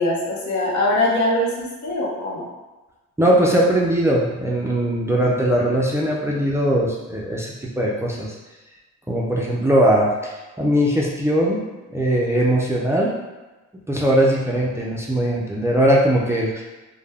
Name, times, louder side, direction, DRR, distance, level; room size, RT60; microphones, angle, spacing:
voice 1, 0.0-2.5, left 1 dB, 70° left, -3 dB, 0.8 m, -22 dB
voice 2, 3.2-8.4 9.1-11.6 11.9-13.1 13.9-16.6, right 1 dB, 10° right, -4 dB, 0.3 m, -20 dB
2.1 x 2.1 x 3.3 m, 1.2 s
cardioid pair, 90°, 30 cm